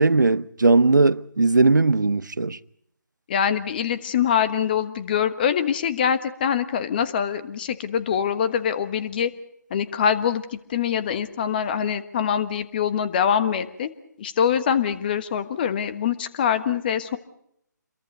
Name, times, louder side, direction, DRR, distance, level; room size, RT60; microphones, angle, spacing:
voice 1, 0.0-2.6, right 3 dB, 75° right, 0.8 m, -18 dB
voice 2, 3.3-9.3 9.7-13.9 14.2-17.2, left 8 dB, 30° left, 1.4 m, -24 dB
28.0 x 22.5 x 5.4 m
figure-of-eight pair, 150°, 10 cm